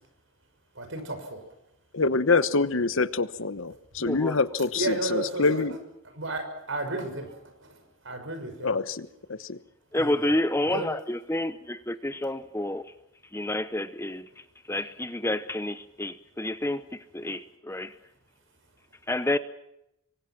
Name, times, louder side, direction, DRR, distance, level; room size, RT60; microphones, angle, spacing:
voice 1, 0.7-1.4 4.8-5.6 6.1-8.7 9.9-10.3 10.7-10.9 14.7-14.8, right 2 dB, 65° right, 6.3 m, -33 dB
voice 2, 1.9-5.8 8.6-9.6, left 3 dB, 70° left, 1.1 m, -26 dB
voice 3, 4.0-4.4 9.9-12.9 13.3-14.3 14.7-17.9 19.1-19.4, left 1 dB, 10° left, 0.8 m, -29 dB
27.0 x 24.0 x 6.0 m
head